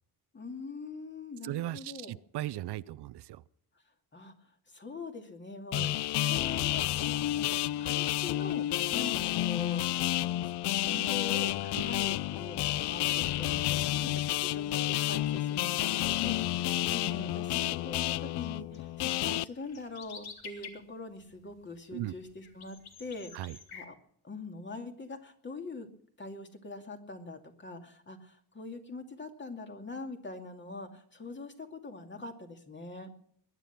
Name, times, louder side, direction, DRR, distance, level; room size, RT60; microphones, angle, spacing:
voice 1, 0.3-2.1 4.1-10.0 10.7-23.4 23.7-23.9 24.2-25.9 26.2-33.1, left 3 dB, 30° left, 2.5 m, -43 dB
voice 2, 1.4-3.4 5.7-5.9 11.8-11.9 21.9-22.1 23.3-23.6, right 14 dB, 85° right, 0.7 m, -37 dB
sound 1, 5.7-19.4, left 14 dB, 85° left, 0.5 m, -30 dB
sound 2, 18.4-20.7 21.1-23.8, left 5 dB, 65° left, 3.1 m, -50 dB
21.5 x 11.0 x 6.0 m
cardioid pair, 130°, 40 cm